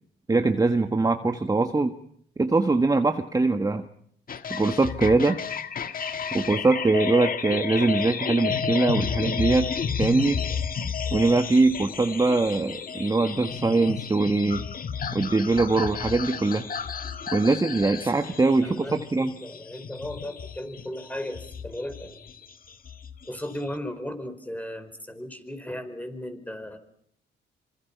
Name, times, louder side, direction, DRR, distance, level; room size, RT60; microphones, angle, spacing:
voice 1, 0.3-1.9 2.4-3.8 4.5-5.4 6.3-9.7 10.0-10.4 11.1-14.7 15.1-16.7 17.3-19.3, right 3 dB, 20° right, 7 dB, 1.4 m, -22 dB
sound 1, 4.3-23.8, left 6 dB, 45° left, 1.7 m, -32 dB
voice 2, 18.6-22.3 23.3-26.8, left 1 dB, 10° left, 9 dB, 4.8 m, -36 dB
26.5 x 26.0 x 5.8 m, 0.67 s
cardioid pair, 90°, 20 cm